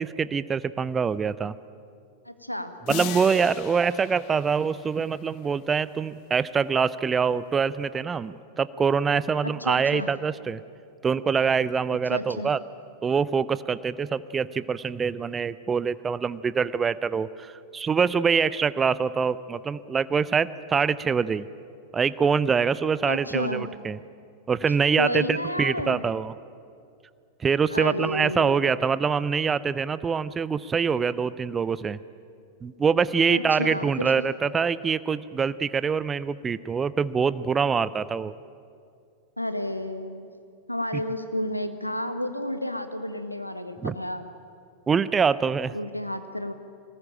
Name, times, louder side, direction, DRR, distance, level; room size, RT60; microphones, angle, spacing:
voice 1, 0.0-1.5 2.9-10.6 11.0-12.6 13.0-21.5 21.9-24.0 24.5-26.3 27.4-32.0 32.6-38.3 40.9-41.0 43.8-43.9 44.9-45.7, right 6 dB, 20° right, 17 dB, 0.6 m, -25 dB
voice 2, 2.2-2.7 9.4-10.1 12.1-12.5 23.1-23.7 25.0-26.0 27.7-28.7 33.3-34.1 39.4-40.3 40.7-44.3 45.7-46.5, left 1 dB, 90° left, 9 dB, 1.4 m, -31 dB
sound 1, 2.9-5.6, left 11 dB, 45° left, 1.3 m, -38 dB
22.5 x 19.0 x 8.9 m, 2.4 s
figure-of-eight pair, 90°, 0 cm